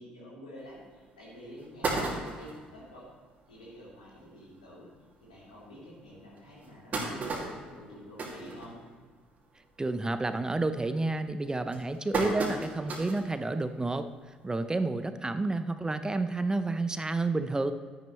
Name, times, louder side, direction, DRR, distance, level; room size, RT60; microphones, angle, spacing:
voice 1, 0.0-3.1 3.5-4.9 5.2-8.8, equal, 85° left, -7 dB, 3.4 m, -48 dB
sound 1, 0.7-0.8 1.3-1.4 1.6-2.7 3.2-3.3 3.6-3.7 4.0-4.2 4.9-5.0 5.5-5.6 6.4-9.2 9.6-9.9 10.3-10.7 11.3-13.3 13.7-13.8 15.0-15.1, right 3 dB, 40° right, 2.3 m, -34 dB
voice 2, 9.8-14.1 14.4-17.7, right 2 dB, 15° right, 11 dB, 0.6 m, -30 dB
12.0 x 10.5 x 3.1 m, 1.5 s
figure-of-eight pair, 50°, 4 cm